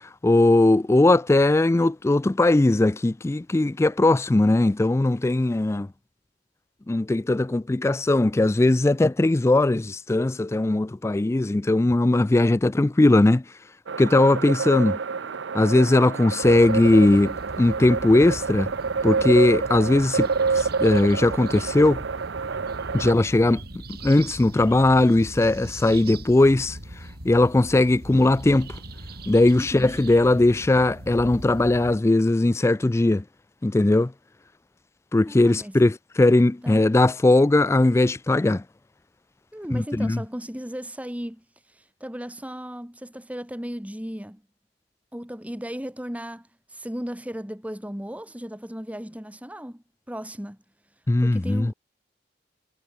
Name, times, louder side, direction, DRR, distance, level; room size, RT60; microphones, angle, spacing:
voice 1, 0.2-5.9 6.9-13.4 14.0-15.0 15.5-18.7 19.0-22.0 22.9-23.6 24.0-26.8 27.2-28.8 29.3-33.2 33.6-34.1 35.1-38.6 39.7-40.2 51.1-51.7, left 2 dB, 15° left, 0.3 m, -19 dB
sound 1, 13.9-23.1, right 5 dB, 90° right, 0.7 m, -28 dB
sound 2, 16.4-32.0, right 1 dB, 60° right, 4.7 m, -40 dB
voice 2, 29.6-30.0 35.3-35.8 36.6-36.8 39.5-44.4 45.1-50.6 51.2-51.7, equal, 10° right, 2.0 m, -36 dB
head